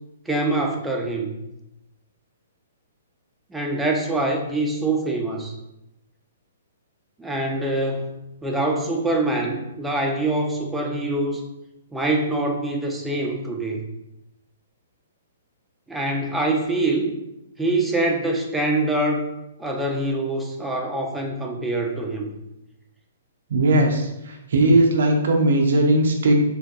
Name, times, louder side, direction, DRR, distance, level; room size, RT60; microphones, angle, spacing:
voice 1, 0.3-1.4 3.5-5.5 7.2-11.4 11.9-13.8 15.9-17.1 17.6-19.3 19.6-22.3, right 2 dB, 5° right, 0 dB, 0.4 m, -24 dB
voice 2, 23.5-26.3, right 1 dB, 60° right, 3 dB, 0.5 m, -18 dB
3.4 x 2.5 x 2.3 m, 0.89 s
figure-of-eight pair, 115°, 0 cm